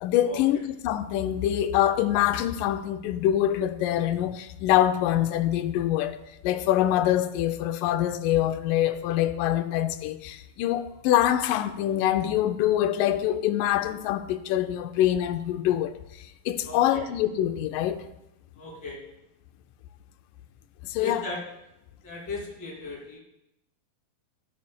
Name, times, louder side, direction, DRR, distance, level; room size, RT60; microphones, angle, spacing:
voice 1, 0.0-6.2 6.4-15.9 16.5-18.0 20.8-21.2, left 12 dB, 80° left, 2.0 m, -25 dB
voice 2, 16.6-17.0 18.6-19.0 21.0-21.4 22.0-23.2, left 3 dB, 30° left, 3.0 m, -37 dB
12.5 x 11.0 x 2.2 m
omnidirectional pair, 4.1 m